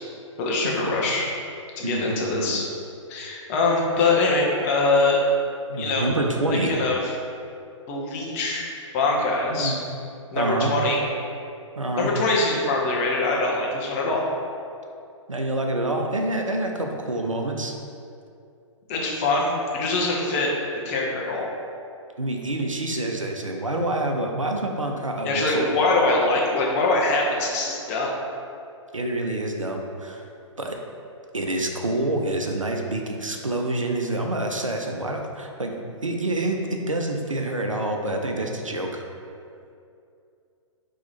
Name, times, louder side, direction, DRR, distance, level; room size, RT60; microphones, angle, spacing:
voice 1, 0.4-1.3 1.8-2.6 3.1-5.2 5.8-6.1 6.5-7.0 7.9-8.7 8.9-9.7 10.3-11.0 12.0-14.2 18.9-20.5 20.8-21.5 25.2-28.1, left 3 dB, 30° left, -2 dB, 0.7 m, -23 dB
voice 2, 1.8-2.5 5.7-6.7 9.5-9.8 10.3-10.8 11.8-12.1 15.3-17.7 22.2-25.6 28.9-30.3 30.6-30.8 31.3-35.7 36.0-39.0, right 1 dB, 90° right, 2 dB, 0.5 m, -27 dB
4.1 x 2.8 x 4.2 m, 2.5 s
figure-of-eight pair, 120°, 16 cm